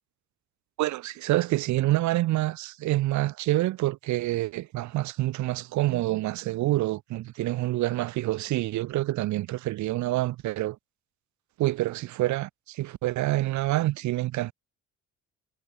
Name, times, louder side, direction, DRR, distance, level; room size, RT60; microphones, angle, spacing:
voice 1, 0.8-10.8 11.6-14.5, right 16 dB, 70° right, 0.6 m, -27 dB
cardioid pair, 90°, 30 cm